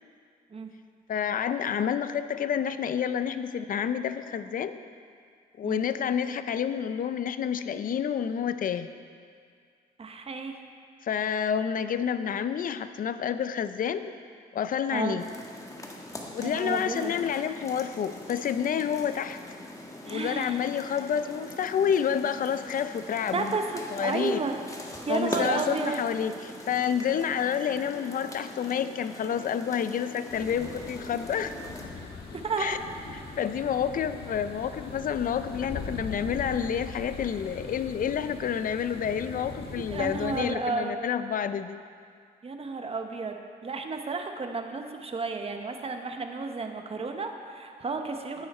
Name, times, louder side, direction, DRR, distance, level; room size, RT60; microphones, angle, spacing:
voice 1, 1.1-4.8 5.6-8.9 11.0-14.1 14.5-15.2 16.3-19.4 20.0-23.6 23.9-24.4 25.1-31.5 32.6-32.8 33.4-41.8, left 8 dB, 55° left, 11 dB, 0.6 m, -29 dB
voice 2, 10.0-10.6 14.9-15.2 16.4-17.1 20.1-20.6 23.3-24.6 25.1-26.0 32.0-32.1 32.3-32.8 39.7-41.1 42.4-48.5, right 4 dB, 35° right, 4 dB, 1.2 m, -32 dB
sound 1, 15.2-31.8, left 1 dB, 20° left, 1.6 m, -42 dB
sound 2, 30.3-40.4, left 4 dB, 75° left, 1.6 m, -41 dB
14.0 x 9.4 x 4.4 m, 2.2 s
cardioid pair, 85°, 17 cm